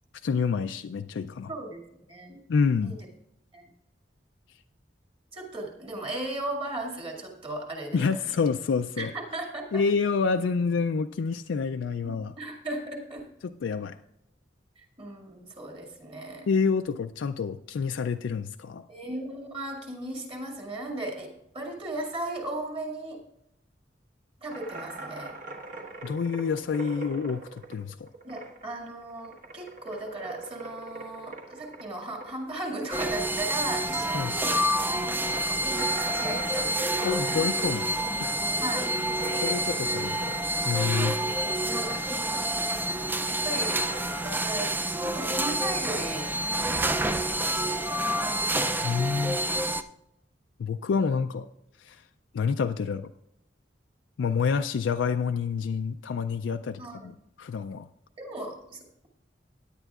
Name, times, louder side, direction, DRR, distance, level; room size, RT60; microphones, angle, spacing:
voice 1, 0.2-1.5 2.5-2.9 7.9-9.1 9.7-12.3 13.6-14.0 16.5-18.8 26.0-28.1 34.1-34.3 37.0-37.9 38.2-38.4 39.3-40.4 40.6-41.2 48.8-49.4 50.6-51.5 51.8-52.0 52.3-53.1 54.2-57.8, left 5 dB, 85° left, 7 dB, 0.4 m, -28 dB
voice 2, 1.5-1.8 2.1-2.4 2.8-3.0 3.5-3.7 5.3-8.0 9.0-9.8 12.0-13.3 14.8-16.5 18.9-23.2 24.4-25.3 28.2-37.2 38.6-38.9 40.9-41.9 42.3-43.9 44.2-48.7 56.8-57.2 58.2-59.1, right 2 dB, 30° right, 0 dB, 2.1 m, -37 dB
sound 1, 24.5-28.8 29.0-34.1 34.3-34.4 34.9-35.0 35.7-41.3 41.6-42.5 42.8-44.2, right 3 dB, 50° right, 1.4 m, -41 dB
sound 2, 32.9-49.8, right 1 dB, 10° right, 0.4 m, -28 dB
17.0 x 9.9 x 2.4 m, 0.82 s
head